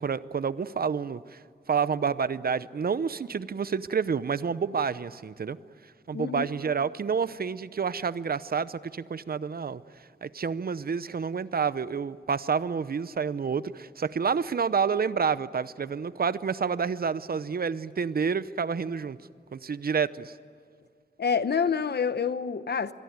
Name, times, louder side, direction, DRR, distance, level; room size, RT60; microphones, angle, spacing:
voice 1, 0.0-1.4 1.7-5.6 6.1-9.8 10.2-19.2 19.5-20.3, right 6 dB, 60° right, 0.7 m, -29 dB
voice 2, 6.1-6.5 21.2-22.9, left 6 dB, 70° left, 1.0 m, -27 dB
25.5 x 22.5 x 9.5 m
wide cardioid pair, 115°, 18 cm